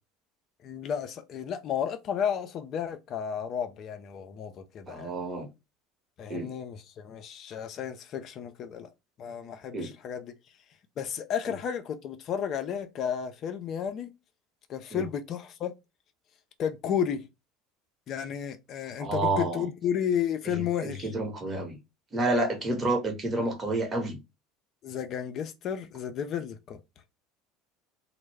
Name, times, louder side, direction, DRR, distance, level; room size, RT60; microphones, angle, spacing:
voice 1, 0.6-5.1 6.2-8.9 9.2-10.3 11.0-14.1 14.7-15.7 16.6-17.3 18.1-21.1 24.8-26.8, left 8 dB, 50° left, 0.4 m, -32 dB
voice 2, 4.9-5.5 6.3-6.5 9.7-9.9 14.9-15.0 19.0-19.7 20.5-21.8 22.1-24.2, right 2 dB, 30° right, 0.9 m, -29 dB
2.2 x 2.0 x 3.2 m
hypercardioid pair, 75°, 0 cm